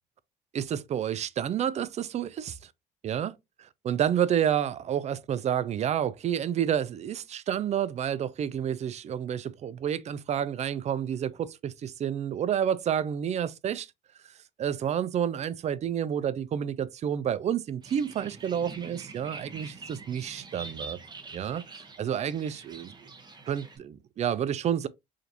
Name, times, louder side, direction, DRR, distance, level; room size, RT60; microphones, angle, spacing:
voice 1, 0.5-2.7 3.0-13.9 14.6-21.0 21.3-21.6 22.0-22.9 23.5-24.9, right 9 dB, 40° right, 0.4 m, -29 dB
sound 1, 17.8-23.8, right 4 dB, 25° right, 0.9 m, -45 dB
4.9 x 2.6 x 2.9 m
cardioid pair, 110°, 17 cm